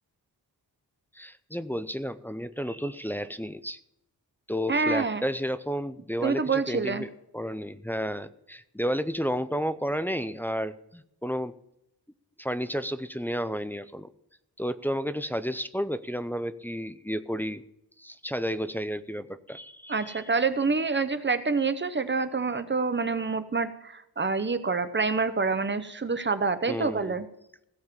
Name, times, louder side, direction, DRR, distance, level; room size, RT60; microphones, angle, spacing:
voice 1, 1.1-3.8 4.5-11.5 12.4-14.1 14.6-17.6 18.0-20.2 26.7-27.2, equal, 5° left, 11 dB, 0.4 m, -32 dB
voice 2, 4.7-5.2 6.2-7.0 19.9-27.3, right 4 dB, 30° right, 10 dB, 0.8 m, -27 dB
16.5 x 7.3 x 5.4 m, 0.80 s
wide cardioid pair, 160°, 39 cm